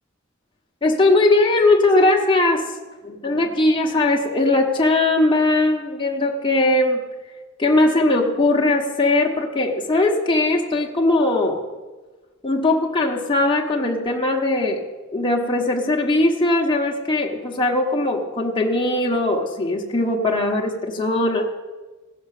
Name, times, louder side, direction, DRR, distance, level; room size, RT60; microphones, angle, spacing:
voice 1, 0.8-2.7 3.0-7.1 7.6-11.7 12.4-14.8 15.1-21.5, left 2 dB, 25° left, -1 dB, 1.0 m, -19 dB
16.0 x 6.3 x 6.6 m, 1.3 s
head